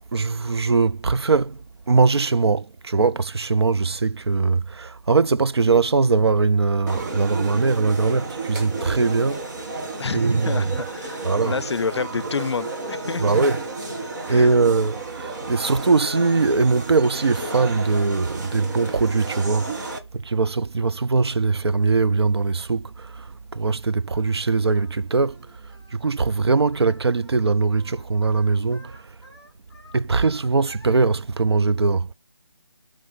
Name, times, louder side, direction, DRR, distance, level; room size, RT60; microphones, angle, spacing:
voice 1, 0.1-9.5 10.1-10.6 11.2-11.6 13.2-13.6 14.2-29.1 29.9-32.1, right 4 dB, 70° right, 0.6 m, -21 dB
sound 1, 6.9-20.0, right 3 dB, 45° right, 1.7 m, -32 dB
voice 2, 10.0-13.2 14.3-14.5, left 5 dB, 75° left, 0.4 m, -29 dB
Singing, 24.1-31.0, equal, 15° right, 2.5 m, -51 dB
7.6 x 3.3 x 5.5 m
figure-of-eight pair, 165°, 14 cm